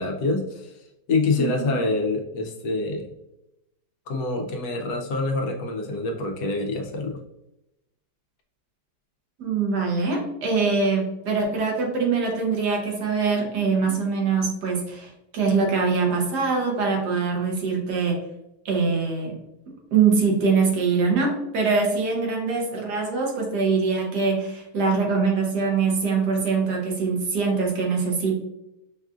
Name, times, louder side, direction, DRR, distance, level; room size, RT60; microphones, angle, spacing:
voice 1, 0.0-3.1 4.1-7.2, left 3 dB, 75° left, 2 dB, 1.1 m, -26 dB
voice 2, 1.4-1.8 9.4-18.2 18.6-19.4 19.9-28.4, right 4 dB, 70° right, 0 dB, 1.4 m, -23 dB
5.3 x 2.4 x 2.3 m, 0.88 s
omnidirectional pair, 1.8 m